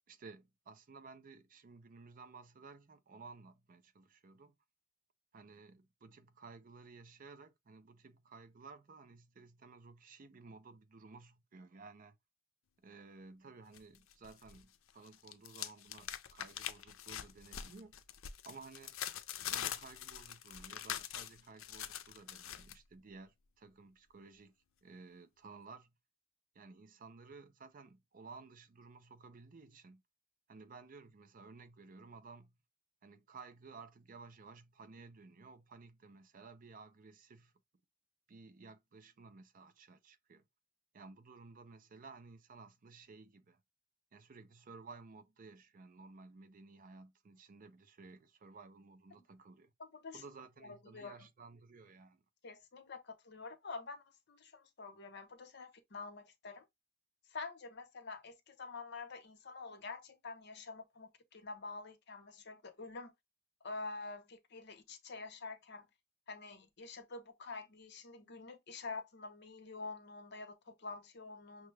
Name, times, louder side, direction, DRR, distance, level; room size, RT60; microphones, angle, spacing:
voice 1, 0.1-4.5 5.3-12.2 12.8-18.0 18.4-19.0 19.5-24.5 24.8-26.0 26.5-30.0 30.5-32.6 33.0-37.5 38.3-40.4 40.9-43.6 44.1-49.7 50.1-52.2, right 4 dB, 45° right, 0.5 m, -55 dB
sound 1, 13.7-14.6 14.9-22.7, left 10 dB, 85° left, 0.5 m, -44 dB
voice 2, 49.8-50.2 50.6-51.3 52.4-56.7 57.3-63.1 63.6-65.9 66.3-71.7, left 3 dB, 60° left, 0.8 m, -47 dB
5.9 x 2.2 x 3.2 m
head